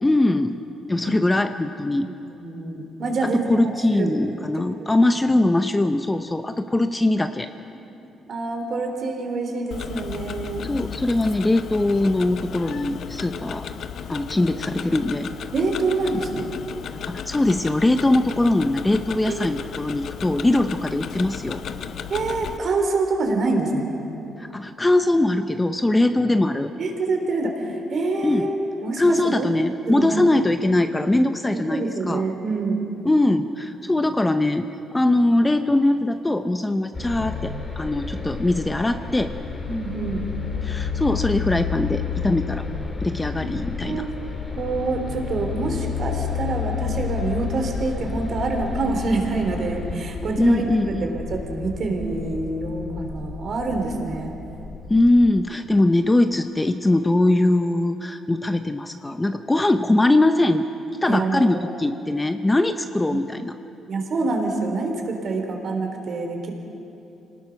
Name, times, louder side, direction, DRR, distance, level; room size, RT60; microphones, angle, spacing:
voice 1, 0.0-0.6 0.9-2.1 3.2-7.5 10.6-13.7 14.1-15.3 17.1-21.6 24.4-26.7 28.2-28.5 29.0-32.2 33.0-39.3 40.6-42.7 43.0-44.1 50.4-51.2 54.9-60.7 61.0-63.5, left 2 dB, 15° left, 8 dB, 0.8 m, -21 dB
voice 2, 1.0-1.3 2.0-4.3 4.7-4.9 7.7-7.8 8.3-10.7 15.5-16.5 19.3-19.5 22.1-23.9 26.8-28.6 28.8-29.5 29.9-30.4 31.5-32.9 39.6-40.3 43.4-44.1 44.5-50.6 51.0-54.3 61.1-61.7 63.1-63.2 63.9-66.5, right 3 dB, 55° right, 3 dB, 3.5 m, -26 dB
Tick-tock, 9.7-22.6, left 8 dB, 65° left, 0.8 m, -34 dB
sound 1, 36.9-55.3, left 6 dB, 30° left, 5.1 m, -31 dB
26.5 x 19.0 x 6.0 m, 2.9 s
cardioid pair, 90°, 0 cm